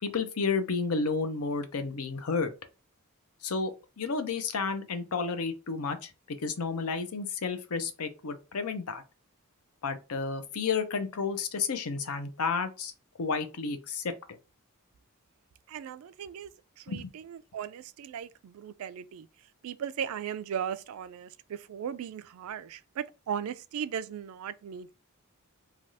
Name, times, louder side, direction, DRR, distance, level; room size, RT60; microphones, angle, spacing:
voice 1, 0.0-2.5 3.4-9.0 9.8-12.9 13.2-14.2 16.9-17.1, left 4 dB, 85° left, 0.6 m, -31 dB
voice 2, 15.7-16.5 16.8-19.3 19.6-24.9, right 8 dB, 75° right, 0.3 m, -37 dB
3.3 x 2.3 x 2.7 m
head